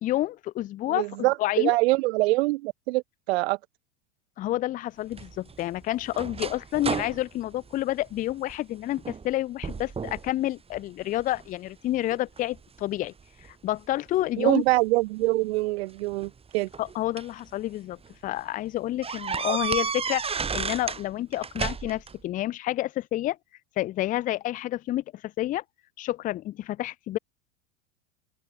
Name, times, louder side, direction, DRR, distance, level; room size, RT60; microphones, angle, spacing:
voice 1, 0.0-1.1 1.4-1.8 4.4-13.1 13.6-14.6 16.8-23.4 23.8-25.6 26.0-27.2, left 15 dB, 20° left, 0.5 m, -29 dB
voice 2, 0.9-3.6 14.4-16.7 19.5-19.6, right 21 dB, 50° right, 1.5 m, -24 dB
sound 1, 5.1-8.6 9.0-9.3 9.6-10.3 10.7-11.5 12.1-13.5 14.7-14.8 16.0-17.4 17.9-18.1 18.4-18.5 19.0-21.0 21.3-22.2, right 5 dB, 15° right, 1.7 m, -32 dB
figure-of-eight pair, 85°, 39 cm